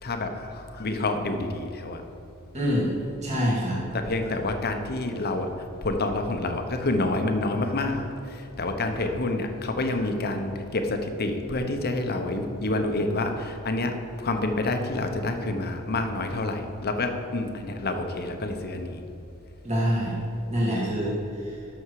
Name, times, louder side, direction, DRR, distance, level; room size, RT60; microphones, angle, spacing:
voice 1, 0.0-2.0 3.9-5.5 5.8-19.0, left 2 dB, 45° left, 5 dB, 1.0 m, -28 dB
voice 2, 2.5-2.9 3.2-3.8 19.6-20.2 20.5-21.1, equal, 30° right, -5 dB, 2.1 m, -25 dB
12.5 x 6.4 x 4.8 m, 2.8 s
head